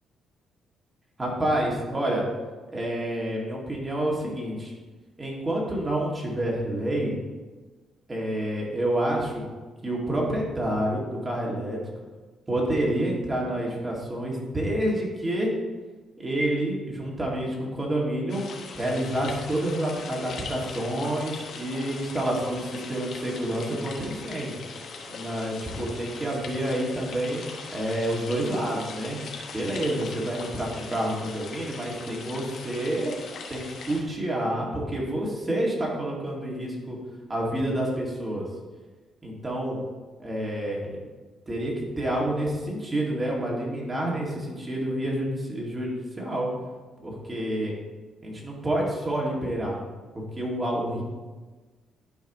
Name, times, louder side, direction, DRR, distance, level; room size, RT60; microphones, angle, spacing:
voice 1, 1.2-2.2 2.7-4.7 5.2-7.1 8.1-9.4 9.8-11.8 12.5-15.5 16.2-18.4 18.7-24.6 25.1-27.4 27.7-29.2 29.5-33.1 33.5-37.0 37.3-38.4 39.2-39.8 40.2-41.0 41.5-46.5 47.0-47.7 48.2-49.8 50.1-51.0, right 1 dB, 20° right, -3 dB, 2.1 m, -28 dB
sound 1, 18.3-34.0, left 4 dB, 65° left, 1.1 m, -40 dB
11.5 x 4.8 x 3.0 m, 1.3 s
cardioid pair, 115°, 0 cm